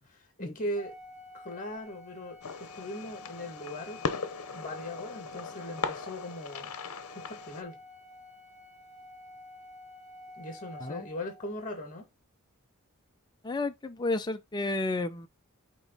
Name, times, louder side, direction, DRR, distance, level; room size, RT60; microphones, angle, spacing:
voice 1, 0.1-0.9 1.3-2.4 2.7-4.0 4.5-6.7 7.1-7.8 10.4-12.1, left 1 dB, 40° left, 2.2 m, -39 dB
Organ, 0.8-11.6, left 1 dB, 80° right, 1.8 m, -50 dB
Fireworks, 2.4-7.6, left 5 dB, 80° left, 0.8 m, -38 dB
voice 2, 13.4-15.3, left 2 dB, 20° left, 0.5 m, -32 dB
8.4 x 3.0 x 4.0 m
head